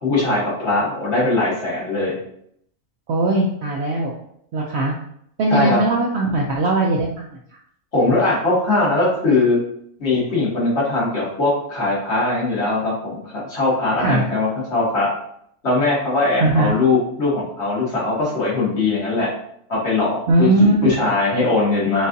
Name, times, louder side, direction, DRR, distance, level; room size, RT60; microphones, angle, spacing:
voice 1, 0.0-2.2 5.5-5.8 7.9-9.6 10.0-15.1 15.6-19.3 19.7-20.5 20.8-22.1, left 3 dB, 50° left, -6 dB, 1.8 m, -20 dB
voice 2, 3.1-4.1 4.5-4.9 5.4-7.4 14.0-14.3 16.4-16.7 20.3-20.7, right 2 dB, 60° right, -2 dB, 0.8 m, -19 dB
6.3 x 2.4 x 2.6 m, 0.70 s
omnidirectional pair, 1.4 m